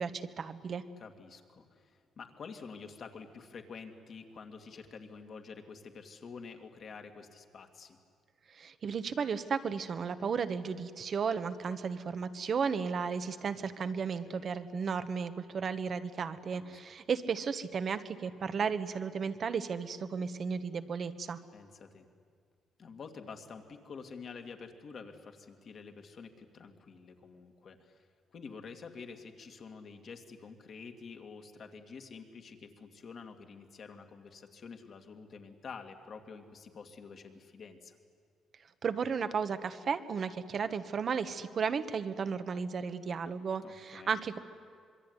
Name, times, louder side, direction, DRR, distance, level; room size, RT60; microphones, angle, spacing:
voice 1, 0.0-0.8 8.5-21.4 38.8-44.4, right 6 dB, 50° right, 10 dB, 1.4 m, -34 dB
voice 2, 1.0-8.0 13.9-14.0 14.2-14.5 16.5-16.8 21.5-22.1 22.8-38.0 43.6-44.1, left 5 dB, 55° left, 5 dB, 2.6 m, -48 dB
26.0 x 22.5 x 9.9 m, 2.1 s
cardioid pair, 90°, 0 cm